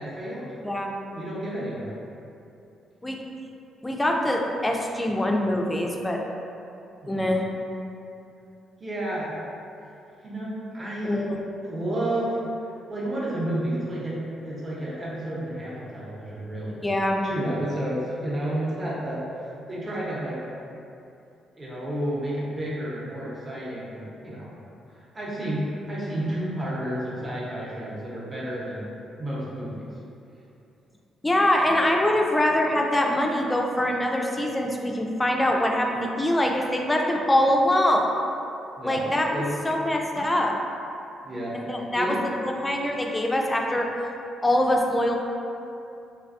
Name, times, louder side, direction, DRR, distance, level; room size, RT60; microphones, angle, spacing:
voice 1, 0.0-0.5 1.1-1.9 7.0-7.2 8.8-9.4 10.2-11.3 11.6-12.5 12.9-16.8 17.2-19.2 19.7-20.4 21.5-24.5 24.9-28.8 29.2-29.9 38.8-39.0 39.3-39.5 40.1-40.3 41.2-42.2, right 1 dB, 30° right, -7 dB, 0.7 m, -31 dB
voice 2, 0.6-1.0 3.0-3.2 3.8-6.2 7.1-7.4 11.0-11.4 16.8-17.2 31.2-38.1 38.8-39.3 39.6-40.5 41.5-42.2 42.4-43.9 44.4-45.1, left 1 dB, 15° left, 1 dB, 0.3 m, -23 dB
3.3 x 2.2 x 2.5 m, 2.7 s
cardioid pair, 90°, 0 cm